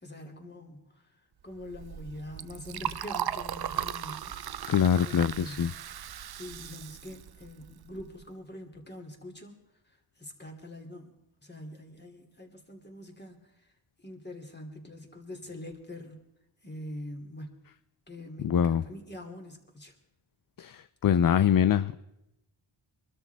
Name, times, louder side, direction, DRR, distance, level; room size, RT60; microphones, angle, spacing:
voice 1, 0.0-1.1 1.4-4.7 5.0-5.7 6.4-9.6 9.9-11.1 11.4-13.7 14.0-16.2 16.6-17.5 18.1-19.9, left 1 dB, 20° left, 2 dB, 2.8 m, -44 dB
Liquid, 1.6-8.2, right 10 dB, 55° right, 0.5 m, -37 dB
voice 2, 4.7-5.7 18.4-18.8 20.6-22.0, left 8 dB, 45° left, 14 dB, 0.5 m, -24 dB
24.5 x 13.0 x 3.5 m, 0.87 s
wide cardioid pair, 70°, 48 cm